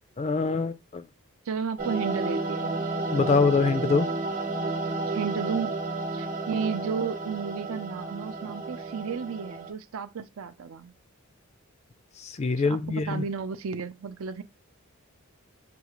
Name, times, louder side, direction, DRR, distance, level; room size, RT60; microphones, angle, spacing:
voice 1, 0.2-1.0 3.1-4.1 12.2-13.2, left 4 dB, 30° left, 0.3 m, -24 dB
voice 2, 1.5-2.9 5.1-5.8 6.1-10.9 12.6-14.4, right 6 dB, 70° right, 0.5 m, -33 dB
sound 1, 1.8-9.7, right 3 dB, 35° right, 0.9 m, -31 dB
6.9 x 2.4 x 3.0 m
head